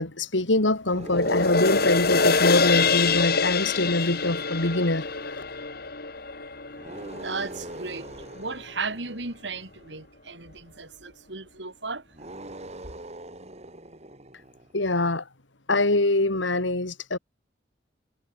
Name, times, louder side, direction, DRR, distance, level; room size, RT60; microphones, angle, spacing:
voice 1, 0.0-5.4 14.7-15.2 15.7-17.2, left 2 dB, 85° left, 2.8 m, -24 dB
sound 1, 0.8-4.4 6.8-9.9 12.1-14.8, right 1 dB, 35° right, 6.7 m, -43 dB
sound 2, 1.0-7.6 8.1-8.2, left 4 dB, 55° left, 5.0 m, -25 dB
voice 2, 6.8-8.1 8.3-12.0 12.5-12.6, right 4 dB, 70° right, 3.9 m, -35 dB
head